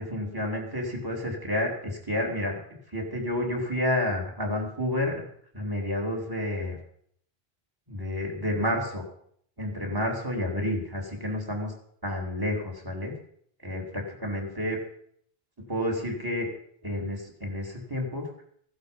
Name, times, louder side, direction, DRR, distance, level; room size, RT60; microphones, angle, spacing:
voice 1, 0.0-2.6 2.9-5.2 5.5-6.7 7.9-9.0 9.6-11.7 12.0-13.1 13.6-14.8 15.7-16.5 16.8-18.3, left 1 dB, 20° right, 0 dB, 3.4 m, -30 dB
16.0 x 11.5 x 5.3 m, 0.65 s
omnidirectional pair, 1.0 m